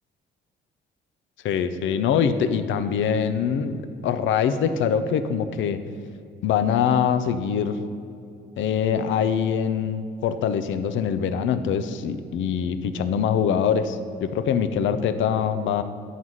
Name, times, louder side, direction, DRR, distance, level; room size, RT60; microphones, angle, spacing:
voice 1, 1.4-5.8 6.4-7.8 8.6-15.8, left 7 dB, 75° left, 11 dB, 0.5 m, -23 dB
9.3 x 4.0 x 6.2 m, 2.4 s
cardioid pair, 90°, 20 cm